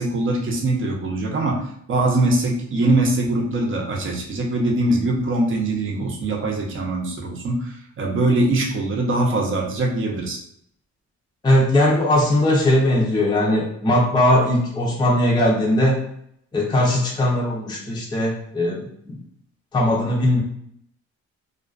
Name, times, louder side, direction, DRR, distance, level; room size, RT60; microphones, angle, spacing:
voice 1, 0.0-1.6 1.9-10.4, right 2 dB, 40° right, 0 dB, 0.7 m, -22 dB
voice 2, 11.4-16.0 16.5-19.2 19.7-20.4, left 1 dB, 15° left, -3 dB, 0.6 m, -19 dB
2.4 x 2.3 x 2.3 m, 0.70 s
cardioid pair, 90°, 30 cm